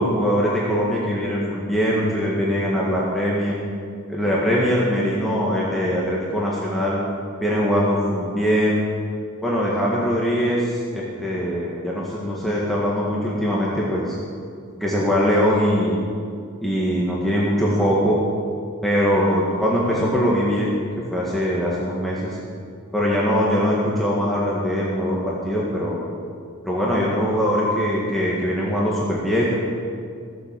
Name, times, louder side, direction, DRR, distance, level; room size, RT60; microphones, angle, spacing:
voice 1, 0.0-3.6 4.1-7.0 7.4-8.8 9.4-14.2 14.7-16.0 16.6-18.2 18.8-20.8 21.1-22.4 22.9-26.0 26.6-29.5, equal, ahead, -6 dB, 1.8 m, -22 dB
15.5 x 7.8 x 7.6 m, 2.2 s
head